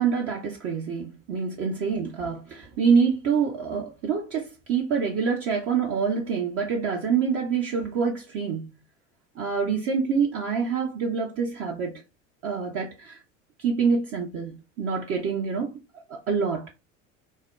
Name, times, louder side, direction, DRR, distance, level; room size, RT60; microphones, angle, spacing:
voice 1, 0.0-8.7 9.4-12.0 12.4-13.2 13.6-15.7 16.1-16.7, right 6 dB, 35° right, 0.7 m, -26 dB
4.4 x 2.1 x 2.2 m
figure-of-eight pair, 70°, 40 cm